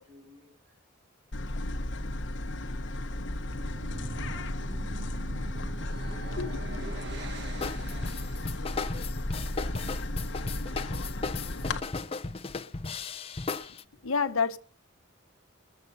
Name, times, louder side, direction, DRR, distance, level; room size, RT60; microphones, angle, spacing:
voice 1, 0.0-0.9 3.0-4.7 6.3-9.2 9.5-10.8, equal, 70° right, 6.2 m, -58 dB
sound 1, 1.3-11.8, left 1 dB, 60° left, 1.0 m, -34 dB
sound 2, 3.3-8.6, right 1 dB, 55° right, 1.4 m, -43 dB
sound 3, 7.6-13.8, left 4 dB, 30° left, 0.5 m, -36 dB
voice 2, 14.0-14.6, left 5 dB, 85° left, 1.0 m, -28 dB
21.0 x 8.2 x 5.4 m
head